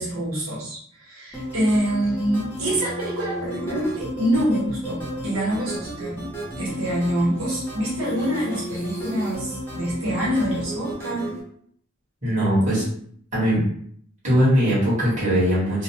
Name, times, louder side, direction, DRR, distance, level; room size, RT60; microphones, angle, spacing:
voice 1, 0.0-6.2 6.6-11.3 12.5-12.8, right 1 dB, 85° right, -6 dB, 1.0 m, -25 dB
sound 1, 1.3-11.4, equal, 10° left, 0.6 m, -33 dB
voice 2, 12.2-12.8 13.3-13.6 14.2-15.8, equal, 35° right, -9 dB, 1.4 m, -20 dB
2.8 x 2.0 x 2.9 m, 0.62 s
head